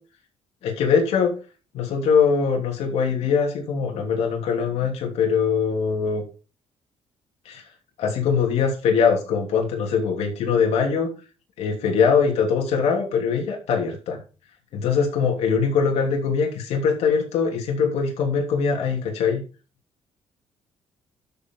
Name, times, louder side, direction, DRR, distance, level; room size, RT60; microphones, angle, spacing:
voice 1, 0.6-1.3 1.7-6.2 7.4-7.6 8.0-11.1 11.6-14.2 14.7-19.4, left 6 dB, 80° left, 0 dB, 3.1 m, -22 dB
12.5 x 6.0 x 4.7 m, 0.34 s
cardioid pair, 125°, 11 cm